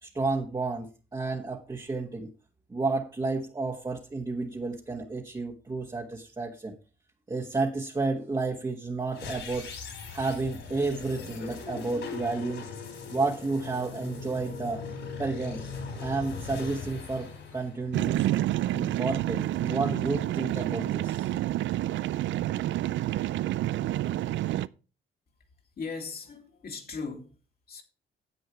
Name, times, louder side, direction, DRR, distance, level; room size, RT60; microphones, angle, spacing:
voice 1, 0.0-2.3 2.7-6.7 7.3-9.7 10.1-12.7 13.1-14.8 15.2-15.6 16.0-18.3 18.7-21.3, right 3 dB, 20° right, 1.4 m, -31 dB
sound 1, 9.1-18.3, left 4 dB, 65° left, 5.0 m, -40 dB
sound 2, 17.9-24.7, right 14 dB, 70° right, 0.4 m, -29 dB
voice 2, 25.8-27.3 27.7-27.8, left 4 dB, 50° left, 2.5 m, -38 dB
9.9 x 7.8 x 4.5 m
cardioid pair, 90°, 20 cm